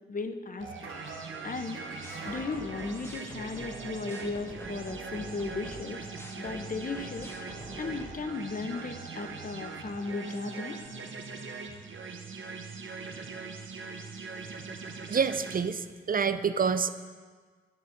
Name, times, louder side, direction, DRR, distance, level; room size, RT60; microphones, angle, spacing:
voice 1, 0.1-0.7 1.4-1.8 2.2-6.0 6.4-7.3 7.8-10.8, left 3 dB, 45° left, 8 dB, 0.7 m, -36 dB
sound 1, 0.6-15.6, right 4 dB, 70° right, 0.8 m, -42 dB
sound 2, 0.6-10.8, right 3 dB, 90° right, 1.5 m, -48 dB
sound 3, 2.0-8.1, equal, 10° left, 1.0 m, -47 dB
voice 2, 15.1-16.9, right 6 dB, 45° right, 12 dB, 0.4 m, -27 dB
10.5 x 4.0 x 6.4 m, 1.5 s
cardioid pair, 70°, 20 cm